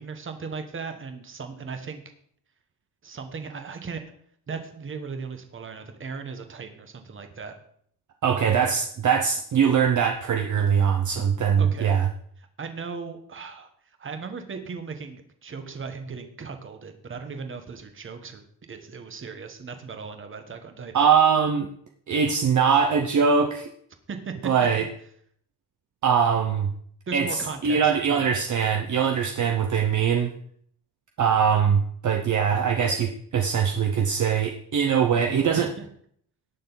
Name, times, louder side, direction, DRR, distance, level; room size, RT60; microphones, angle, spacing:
voice 1, 0.0-2.0 3.0-4.0 4.5-7.5 11.6-12.0 12.4-13.7 14.0-21.0 24.1-24.5 27.1-28.3 35.5-35.9, right 5 dB, 30° right, 7 dB, 1.3 m, -37 dB
voice 2, 8.2-12.1 20.9-21.7 22.1-23.7 24.4-24.9 26.0-26.7 27.1-30.3 31.2-35.7, right 7 dB, 45° right, 4 dB, 0.9 m, -22 dB
18.0 x 6.5 x 4.0 m, 0.64 s
wide cardioid pair, 170°, 40 cm